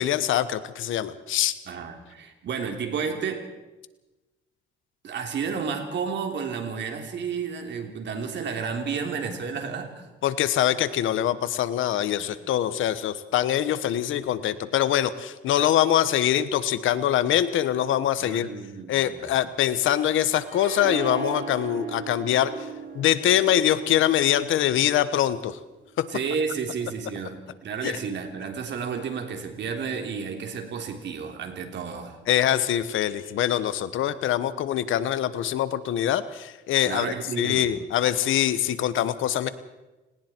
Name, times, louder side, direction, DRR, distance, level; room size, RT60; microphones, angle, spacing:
voice 1, 0.0-1.5 10.2-18.5 18.9-22.5 22.9-25.6 26.0-26.1 27.8-28.0 32.3-39.5, left 11 dB, 80° left, 14 dB, 1.2 m, -24 dB
voice 2, 1.7-3.5 5.0-10.1 12.2-12.3 18.2-19.3 26.1-32.2 36.8-37.7, right 6 dB, 65° right, 4 dB, 3.5 m, -31 dB
Harp, 20.5-25.5, right 5 dB, 45° right, 4.2 m, -37 dB
29.5 x 19.0 x 4.6 m, 1.1 s
cardioid pair, 90°, 20 cm